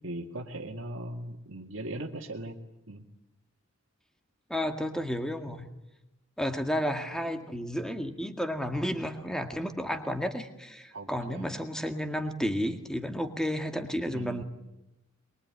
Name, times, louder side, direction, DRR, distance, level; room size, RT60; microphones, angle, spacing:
voice 1, 0.0-2.6 2.9-3.0 10.9-11.5 14.0-14.4, right 1 dB, 65° right, 2 dB, 2.0 m, -39 dB
voice 2, 4.5-5.7 6.4-14.4, equal, 5° left, 6 dB, 1.9 m, -32 dB
23.5 x 23.5 x 9.8 m, 0.92 s
head